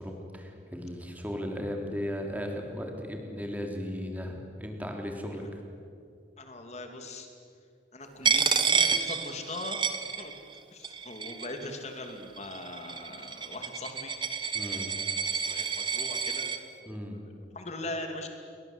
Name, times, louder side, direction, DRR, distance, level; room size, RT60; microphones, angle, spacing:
voice 1, 0.0-5.6 14.5-14.9 16.9-17.2, equal, 10° right, 2 dB, 3.6 m, -36 dB
voice 2, 6.4-7.3 7.9-9.8 10.2-10.3 10.7-14.1 14.7-16.5 16.8-18.3, left 2 dB, 40° left, 4 dB, 2.8 m, -41 dB
Coin (dropping), 8.2-10.6 10.8-11.7 12.4-16.6, right 6 dB, 25° right, 1.5 m, -29 dB
30.0 x 23.5 x 8.2 m, 2.3 s
head